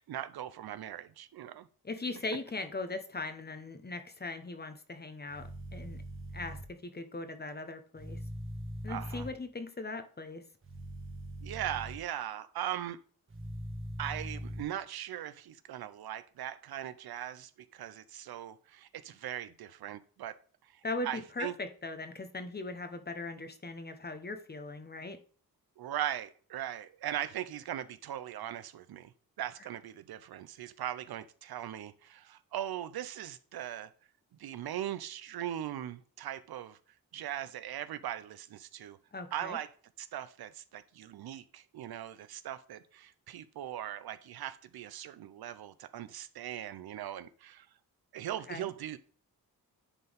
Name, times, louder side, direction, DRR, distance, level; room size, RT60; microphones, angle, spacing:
voice 1, 0.1-1.7 8.9-9.3 11.4-13.0 14.0-20.4 21.0-21.5 25.8-29.1 29.4-33.9 34.4-36.8 37.1-39.0 39.3-39.7 40.0-47.7 48.1-49.0, right 11 dB, 80° right, 0.7 m, -39 dB
voice 2, 1.8-6.0 6.3-8.2 8.8-10.4 20.8-25.2 39.1-39.6 48.5-48.7, left 2 dB, 25° left, 1.0 m, -39 dB
sound 1, 5.3-6.6 8.0-9.3 10.6-12.0 13.3-14.6, right 1 dB, 35° right, 1.7 m, -41 dB
9.8 x 4.6 x 3.5 m
cardioid pair, 85°, 37 cm